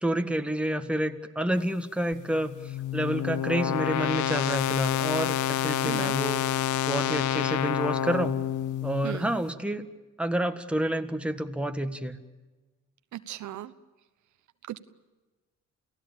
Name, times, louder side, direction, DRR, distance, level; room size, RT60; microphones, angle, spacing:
voice 1, 0.0-2.5 2.9-6.4 6.9-8.4 8.8-9.8 10.2-12.2, right 1 dB, 5° right, 6 dB, 1.7 m, -29 dB
sound 1, 2.1-9.2, left 10 dB, 80° left, 0.8 m, -28 dB
voice 2, 5.8-6.2 9.0-9.3 13.1-13.7 14.7-14.8, right 13 dB, 70° right, 12 dB, 1.1 m, -36 dB
29.0 x 17.0 x 8.8 m, 1.2 s
cardioid pair, 90°, 30 cm